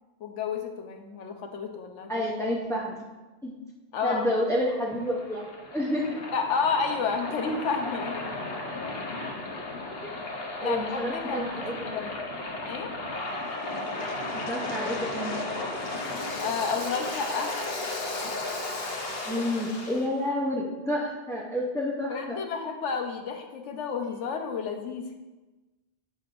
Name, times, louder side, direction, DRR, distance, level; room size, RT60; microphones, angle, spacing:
voice 1, 0.2-2.2 3.9-4.3 6.3-8.3 10.6-12.2 12.7-12.9 16.4-17.5 22.1-25.2, left 5 dB, 85° left, 4 dB, 1.0 m, -31 dB
voice 2, 2.1-3.0 3.4-3.6 4.0-6.2 10.0-10.3 10.5-12.0 14.3-15.3 19.2-22.4, left 1 dB, 5° left, -5 dB, 0.4 m, -30 dB
Waves surf, 4.3-20.1, left 2 dB, 60° left, 1.0 m, -34 dB
7.6 x 5.2 x 2.5 m, 1.2 s
omnidirectional pair, 1.2 m